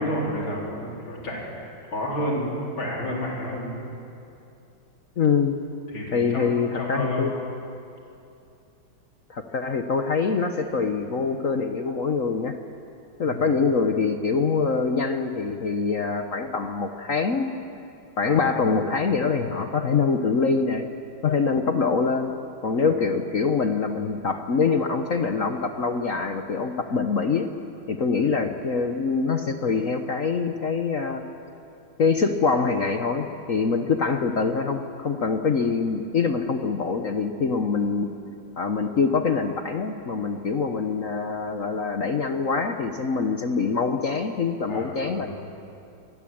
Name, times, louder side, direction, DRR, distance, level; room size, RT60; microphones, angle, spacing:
voice 1, 0.0-3.7 5.9-7.3 13.2-13.4 18.2-18.9 22.8-23.0 28.1-28.5 44.7-45.3, equal, 85° left, -3 dB, 4.7 m, -31 dB
voice 2, 5.2-5.6 6.1-7.3 9.3-12.6 13.2-17.6 18.2-20.9 21.2-22.3 22.6-27.5 27.9-31.2 32.0-38.1 38.6-45.3, left 5 dB, 50° left, 6 dB, 1.2 m, -24 dB
25.5 x 20.5 x 8.8 m, 2.6 s
omnidirectional pair, 2.1 m